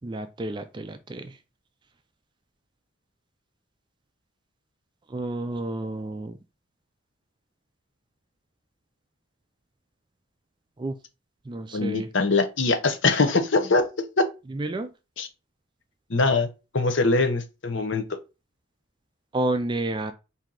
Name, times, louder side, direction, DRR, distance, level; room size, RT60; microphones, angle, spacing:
voice 1, 0.0-1.4 5.1-6.4 10.8-10.9 11.5-12.1 14.5-14.9 19.3-20.1, right 2 dB, 20° right, 0.3 m, -30 dB
voice 2, 11.7-14.3 15.2-15.3 16.1-16.5 16.7-18.2, left 3 dB, 65° left, 0.8 m, -23 dB
4.5 x 2.7 x 3.7 m
head